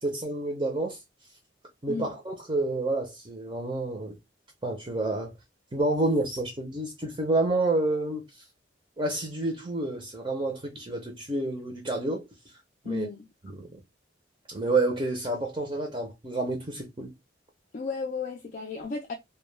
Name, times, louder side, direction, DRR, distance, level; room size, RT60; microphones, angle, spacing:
voice 1, 0.0-1.0 1.8-4.2 4.6-5.3 5.7-8.2 9.0-12.2 12.8-13.1 13.5-13.7 14.5-17.1, right 2 dB, 25° right, 0.5 m, -29 dB
voice 2, 12.8-13.3 17.7-19.1, left 4 dB, 40° left, 0.3 m, -34 dB
2.1 x 2.1 x 3.1 m
head